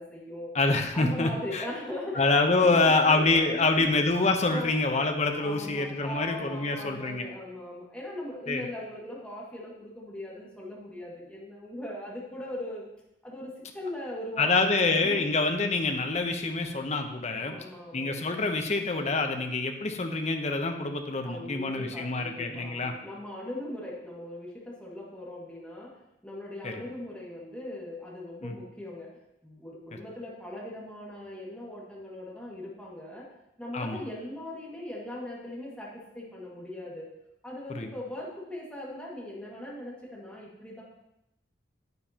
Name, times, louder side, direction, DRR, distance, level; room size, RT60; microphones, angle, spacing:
voice 1, 0.0-0.5 0.9-3.9 4.4-4.8 5.4-12.8 13.2-15.3 17.4-18.4 21.2-26.0 26.2-29.1 29.4-33.3 33.6-37.1 37.4-40.8, left 1 dB, 5° left, -5 dB, 2.0 m, -39 dB
voice 2, 0.5-1.6 2.2-7.3 8.5-8.6 14.4-17.6 17.9-22.9 26.6-26.8 28.4-28.5 33.7-34.0 37.7-37.9, left 3 dB, 40° left, 5 dB, 0.9 m, -26 dB
9.4 x 9.2 x 2.9 m, 0.87 s
head